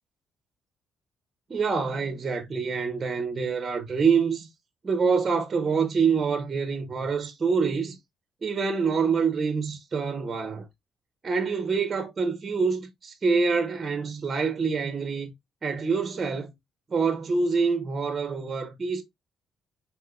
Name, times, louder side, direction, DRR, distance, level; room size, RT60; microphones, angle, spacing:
voice 1, 1.5-4.5 4.8-8.0 8.4-10.7 11.2-15.3 15.6-16.5 16.9-19.0, right 5 dB, 35° right, 0.8 m, -26 dB
4.3 x 3.5 x 2.2 m
cardioid pair, 90°, 0 cm